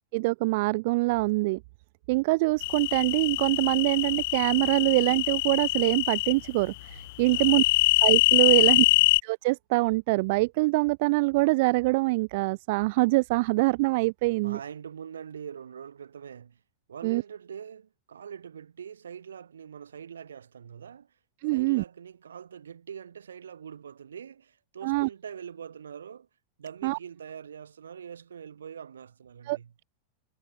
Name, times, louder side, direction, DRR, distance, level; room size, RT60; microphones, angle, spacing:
voice 1, 0.1-1.6 2.1-7.6 8.0-8.8 9.2-14.6 17.0-17.2 21.4-21.8 24.8-25.1 26.8-27.0 29.5-29.6, right 24 dB, 50° right, 1.0 m, -24 dB
sound 1, 2.6-6.3 7.3-9.2, left 20 dB, 50° left, 0.5 m, -24 dB
voice 2, 7.3-7.6 8.5-9.0 14.4-16.6 16.9-21.1 21.5-26.3 26.6-29.7, right 8 dB, 70° right, 7.3 m, -43 dB
figure-of-eight pair, 90°, 0 cm